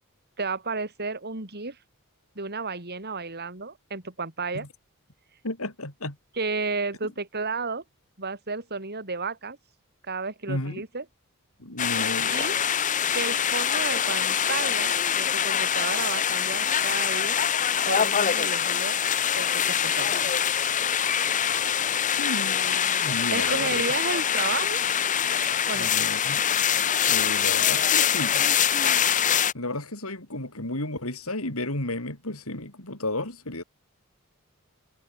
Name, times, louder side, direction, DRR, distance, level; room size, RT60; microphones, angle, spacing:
voice 1, 0.4-1.8 2.4-4.7 6.4-7.8 8.2-9.6 10.1-11.0 12.3-12.6 13.1-17.4 17.9-19.0 19.3-20.3 23.3-24.8 25.7-25.9, right 4 dB, 50° right, 4.1 m, -32 dB
voice 2, 5.4-6.2 10.5-10.8 11.6-12.7 22.2-23.8 25.7-26.4 27.0-28.5 29.5-33.6, left 1 dB, 75° left, 6.4 m, -33 dB
sound 1, 11.8-29.5, left 8 dB, 35° left, 0.8 m, -24 dB
head